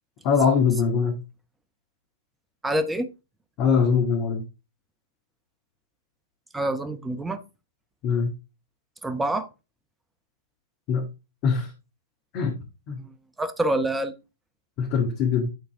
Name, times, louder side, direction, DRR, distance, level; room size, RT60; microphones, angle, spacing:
voice 1, 0.2-1.2 3.6-4.4 8.0-8.3 10.9-11.1 11.4-11.7 12.3-12.6 12.9-13.0 14.8-15.5, left 6 dB, 35° left, 1.9 m, -22 dB
voice 2, 2.6-3.1 6.5-7.4 9.0-9.5 13.0-14.1, right 1 dB, 10° right, 0.9 m, -26 dB
11.0 x 3.9 x 3.6 m
figure-of-eight pair, 115°, 0 cm